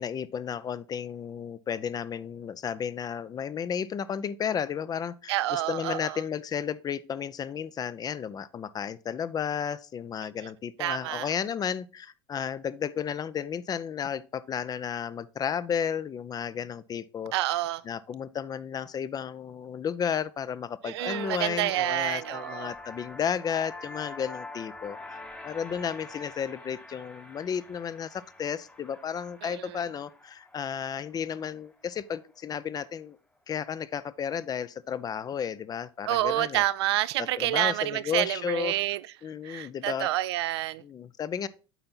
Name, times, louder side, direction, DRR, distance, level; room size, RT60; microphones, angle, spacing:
voice 1, 0.0-17.6 17.8-25.2 25.4-33.2 33.5-36.6 37.4-38.7 39.2-40.1 40.8-41.5, left 8 dB, 30° left, 0.5 m, -33 dB
voice 2, 5.3-6.2 10.8-11.3 17.3-17.8 20.8-22.7 29.4-29.8 36.0-39.0 39.4-40.8, right 15 dB, 80° right, 0.4 m, -28 dB
sound 1, 21.0-32.6, left 2 dB, 10° left, 0.9 m, -45 dB
8.0 x 4.3 x 3.9 m
hypercardioid pair, 90°, 14 cm